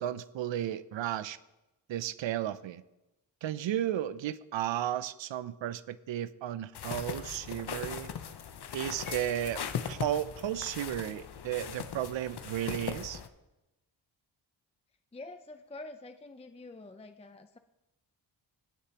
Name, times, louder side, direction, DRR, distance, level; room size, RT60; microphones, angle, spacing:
voice 1, 0.0-1.4 1.9-2.8 3.4-8.1 8.7-9.6 9.9-13.2, right 11 dB, 75° right, 16 dB, 0.6 m, -34 dB
sound 1, 6.7-13.3, left 7 dB, 60° left, 0.8 m, -39 dB
Piano, 9.1-10.0, equal, 85° left, 3.9 m, -49 dB
voice 2, 15.1-17.6, left 2 dB, 15° left, 8 dB, 0.5 m, -47 dB
17.5 x 6.6 x 2.9 m, 0.96 s
cardioid pair, 70°, 46 cm